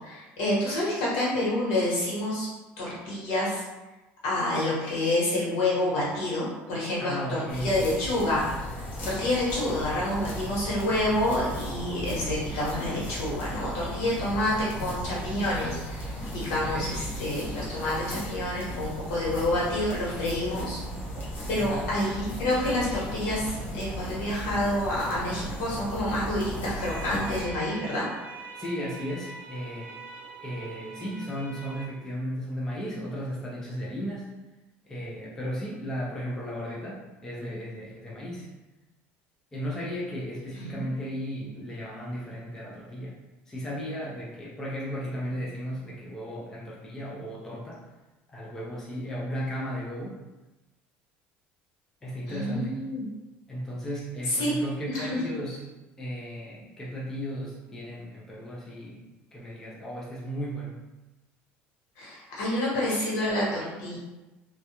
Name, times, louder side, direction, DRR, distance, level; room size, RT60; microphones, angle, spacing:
voice 1, 0.0-2.5 2.8-3.6 4.2-20.8 21.5-28.0 40.6-41.1 45.3-45.4 52.3-53.1 54.3-54.5 54.9-55.2 62.0-64.0, left 1 dB, 75° left, -6 dB, 1.1 m, -28 dB
voice 2, 7.0-7.9 16.6-16.9 21.5-21.9 28.6-29.9 30.4-34.3 34.9-38.5 39.5-43.1 43.5-47.8 48.3-50.2 52.0-52.8 53.5-55.7 56.0-59.1 59.3-60.8, equal, 10° left, -5 dB, 0.3 m, -35 dB
sound 1, 7.5-27.4, equal, 40° left, 0.7 m, -36 dB
sound 2, 26.8-31.8, right 3 dB, 40° right, 0.7 m, -43 dB
2.3 x 2.1 x 2.8 m, 1.1 s
cardioid pair, 170°, 5 cm